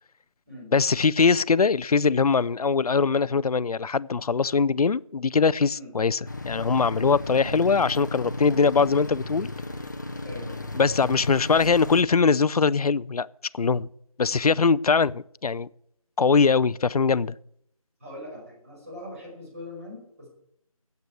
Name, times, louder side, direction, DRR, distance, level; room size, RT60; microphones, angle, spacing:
voice 1, 0.7-6.2 6.4-9.5 10.7-13.3 13.5-13.9 14.2-15.7 16.2-17.3, left 5 dB, 90° left, 0.5 m, -22 dB
sound 1, 6.3-12.0, left 2 dB, 30° left, 0.7 m, -35 dB
voice 2, 10.2-10.5 18.0-20.3, left 1 dB, 25° right, 5.2 m, -41 dB
9.4 x 8.1 x 8.2 m
figure-of-eight pair, 175°, 19 cm